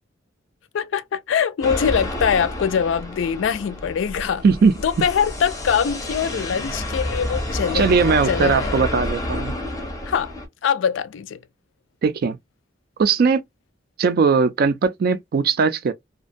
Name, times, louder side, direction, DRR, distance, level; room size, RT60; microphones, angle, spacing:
voice 1, 0.7-4.4 4.8-8.7 10.1-10.3 10.6-11.4, left 7 dB, 80° left, 0.3 m, -23 dB
sound 1, 1.6-10.5, left 1 dB, 20° left, 0.6 m, -29 dB
voice 2, 4.4-4.7 7.7-9.6 12.0-12.4 13.0-13.4 14.0-15.9, right 5 dB, 50° right, 0.3 m, -19 dB
2.5 x 2.2 x 2.5 m
head